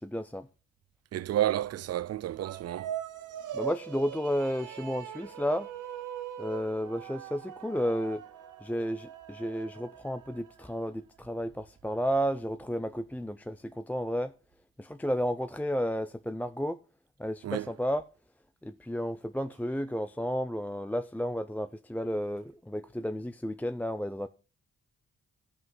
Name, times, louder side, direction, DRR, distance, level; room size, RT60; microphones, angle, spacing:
voice 1, 0.0-0.5 3.5-5.7 6.4-8.2 8.6-14.3 14.8-16.8 17.2-18.0 18.6-24.3, equal, 5° left, 0.6 m, -32 dB
voice 2, 1.1-2.9 17.4-17.7, right 12 dB, 55° right, 0.4 m, -30 dB
sound 1, 2.3-10.8, right 10 dB, 75° right, 1.0 m, -41 dB
15.0 x 5.5 x 3.9 m
supercardioid pair, 50°, 31 cm